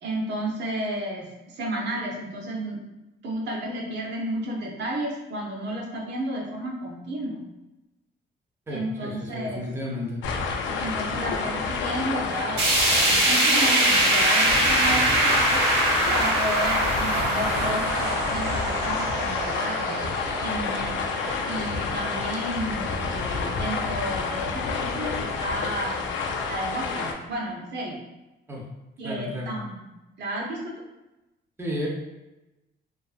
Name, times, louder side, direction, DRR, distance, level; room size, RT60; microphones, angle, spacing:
voice 1, 0.0-2.8 3.2-7.4 8.7-9.6 10.7-12.6 13.0-15.6 16.1-20.0 20.4-21.1 21.4-26.1 26.5-28.0 29.0-29.8 30.2-30.7, right 1 dB, 60° right, -1 dB, 0.7 m, -32 dB
voice 2, 8.7-10.2 28.5-28.6 29.0-29.6 31.6-31.9, left 1 dB, 10° right, -2 dB, 0.5 m, -32 dB
sound 1, 10.2-27.1, left 4 dB, 70° left, 0.4 m, -29 dB
sound 2, 12.6-22.7 23.1-23.2 23.6-23.7 24.6-24.7, right 1 dB, 80° right, 1.2 m, -24 dB
2.5 x 2.4 x 2.4 m, 1.0 s
cardioid pair, 90°, 20 cm